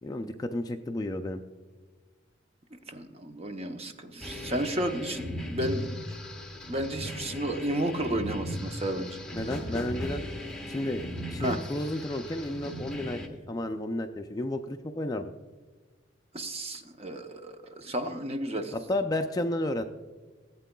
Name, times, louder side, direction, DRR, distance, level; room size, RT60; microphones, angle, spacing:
voice 1, 0.0-1.4 9.3-10.2 10.7-13.2 13.5-15.3 18.7-19.8, left 1 dB, 20° left, 6 dB, 0.3 m, -32 dB
voice 2, 2.9-5.9 6.7-9.2 11.4-11.6 16.3-18.7, right 1 dB, 30° right, 6 dB, 0.7 m, -32 dB
sound 1, 4.2-13.3, equal, 5° left, 0.9 m, -37 dB
15.0 x 8.2 x 2.2 m, 1.4 s
head